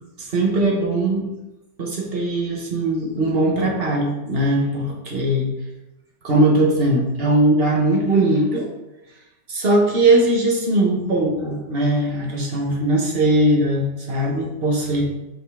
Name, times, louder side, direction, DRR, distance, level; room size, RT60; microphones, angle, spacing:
voice 1, 0.2-1.3 1.8-5.5 6.2-8.7 9.5-15.0, right 1 dB, 35° right, -1 dB, 1.2 m, -20 dB
5.8 x 5.2 x 3.6 m, 0.96 s
omnidirectional pair, 2.0 m